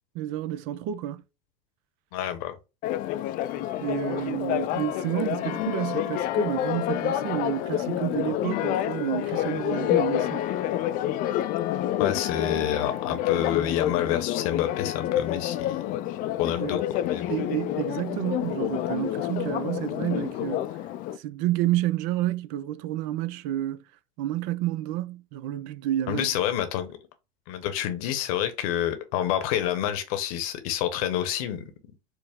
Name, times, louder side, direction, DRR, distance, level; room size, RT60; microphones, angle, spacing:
voice 1, 0.1-1.2 3.8-10.4 16.6-16.8 17.3-20.7 21.1-23.8 24.2-26.3, right 13 dB, 60° right, 0.5 m, -30 dB
voice 2, 2.1-2.6 12.0-15.9 16.4-17.3 26.1-27.0 27.5-31.6, left 11 dB, 65° left, 0.9 m, -28 dB
Church bell, 2.8-21.2, left 12 dB, 45° left, 0.4 m, -28 dB
4.7 x 2.0 x 3.5 m
hypercardioid pair, 85°, 19 cm